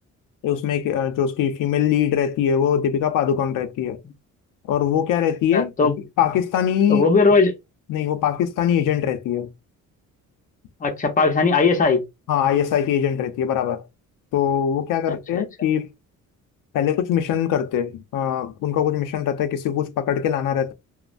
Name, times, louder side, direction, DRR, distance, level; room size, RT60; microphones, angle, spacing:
voice 1, 0.4-4.0 4.7-5.7 6.2-7.0 7.9-9.5 12.3-13.8 14.3-15.9 16.7-20.7, left 9 dB, 80° left, 0.6 m, -22 dB
voice 2, 5.5-6.0 6.9-7.5 10.8-12.0 15.1-15.4, left 4 dB, 25° left, 0.7 m, -18 dB
3.0 x 2.1 x 2.5 m
cardioid pair, 150°, 32 cm